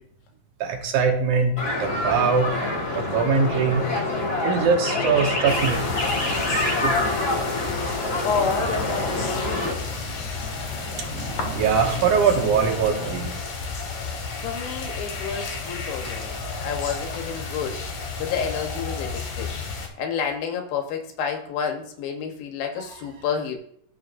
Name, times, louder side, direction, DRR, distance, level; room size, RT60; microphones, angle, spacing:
voice 1, 0.6-2.5 2.9-3.8 4.4-5.9 6.6-7.2 11.6-13.4, right 5 dB, 70° right, 2 dB, 2.3 m, -22 dB
sound 1, 1.6-9.7, left 2 dB, 40° left, 2.3 m, -26 dB
sound 2, 1.8-13.3, right 3 dB, 50° right, 2.3 m, -39 dB
sound 3, 5.5-19.9, left 4 dB, 55° left, 2.4 m, -32 dB
voice 2, 8.2-9.8 14.4-17.8 18.2-19.5 20.0-23.6, left 6 dB, 90° left, 3 dB, 2.9 m, -29 dB
16.0 x 5.4 x 2.6 m, 0.67 s
omnidirectional pair, 4.0 m